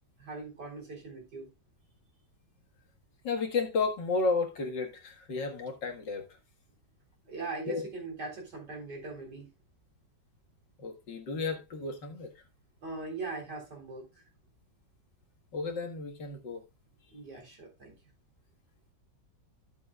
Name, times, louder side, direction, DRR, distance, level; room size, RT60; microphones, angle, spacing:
voice 1, 0.2-1.5 7.2-9.5 12.8-14.0 17.1-18.0, right 3 dB, 65° right, 4.4 m, -40 dB
voice 2, 3.2-6.3 7.7-7.9 10.8-12.3 15.5-16.6, left 4 dB, 80° left, 2.4 m, -32 dB
13.5 x 7.4 x 2.4 m
omnidirectional pair, 1.9 m